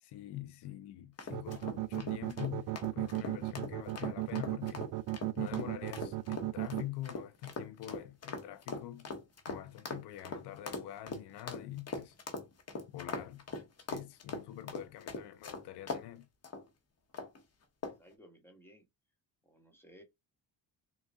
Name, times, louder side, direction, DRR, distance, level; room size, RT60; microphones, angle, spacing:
voice 1, 0.0-4.9 5.4-9.1 9.5-12.2 12.9-13.4 13.9-16.3, left 13 dB, 80° left, 0.7 m, -45 dB
sound 1, 1.2-16.1 16.4-16.6 17.1-17.4 17.8-18.1, left 4 dB, 40° left, 1.0 m, -41 dB
sound 2, 1.3-6.8, right 17 dB, 60° right, 0.5 m, -35 dB
voice 2, 18.0-18.8 19.4-20.0, equal, 5° left, 1.2 m, -58 dB
3.9 x 2.4 x 3.5 m
cardioid pair, 120°, 40 cm